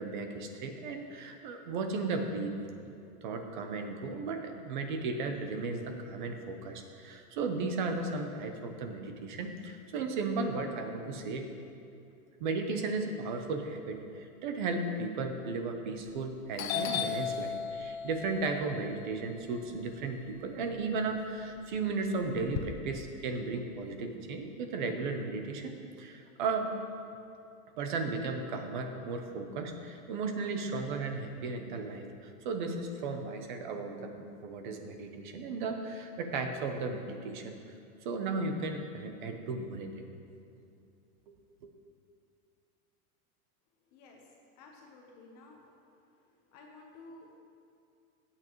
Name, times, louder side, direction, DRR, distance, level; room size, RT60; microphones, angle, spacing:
voice 1, 0.0-2.6 2.9-3.0 3.2-11.5 12.4-25.7 26.0-26.8 27.8-37.6 38.0-40.0 41.6-41.7, right 3 dB, 35° right, 5 dB, 0.8 m, -35 dB
Doorbell, 16.0-16.3 16.6-20.7 21.1-22.6, left 8 dB, 60° left, 0.7 m, -37 dB
voice 2, 43.9-45.6 46.1-47.4, left 2 dB, 25° left, 0 dB, 0.9 m, -54 dB
17.0 x 8.7 x 3.1 m, 2.5 s
supercardioid pair, 175°, 45 cm